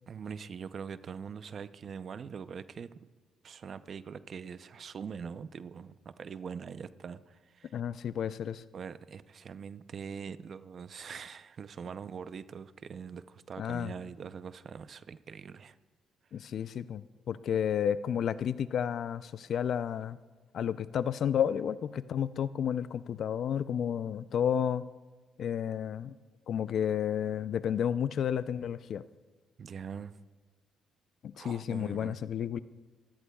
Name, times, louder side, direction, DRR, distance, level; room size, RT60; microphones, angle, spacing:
voice 1, 0.1-3.0 3.4-7.8 8.7-15.8 16.4-16.5 29.6-30.2 31.4-32.2, right 6 dB, 50° right, 13 dB, 0.6 m, -43 dB
voice 2, 7.7-8.6 13.6-13.9 16.3-20.2 20.5-24.8 25.4-26.2 26.5-29.0 31.2-32.6, left 8 dB, 65° left, 15 dB, 0.4 m, -31 dB
24.5 x 16.5 x 2.3 m, 1.3 s
cardioid pair, 90°, 0 cm